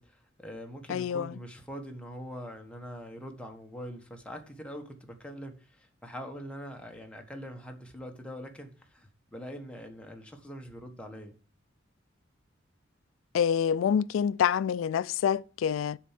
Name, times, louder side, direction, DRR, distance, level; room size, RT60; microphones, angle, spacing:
voice 1, 0.0-11.3, equal, 5° left, 1.3 m, -43 dB
voice 2, 0.9-1.3 13.3-16.0, left 8 dB, 90° left, 0.3 m, -27 dB
9.3 x 4.3 x 7.3 m
head